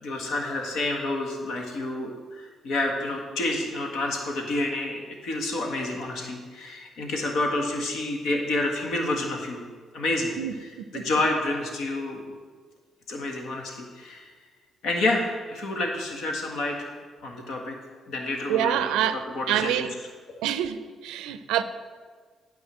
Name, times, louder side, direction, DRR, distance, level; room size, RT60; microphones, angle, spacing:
voice 1, 0.0-9.6 9.9-12.2 13.1-14.3 14.8-16.9 17.2-17.8 18.1-19.9 20.3-20.4, left 2 dB, 75° left, 1.7 m, -29 dB
voice 2, 10.4-11.1 18.5-19.2 19.5-19.9 20.4-21.6, right 11 dB, 85° right, 0.4 m, -26 dB
9.4 x 4.7 x 7.5 m
supercardioid pair, 65°, 0 cm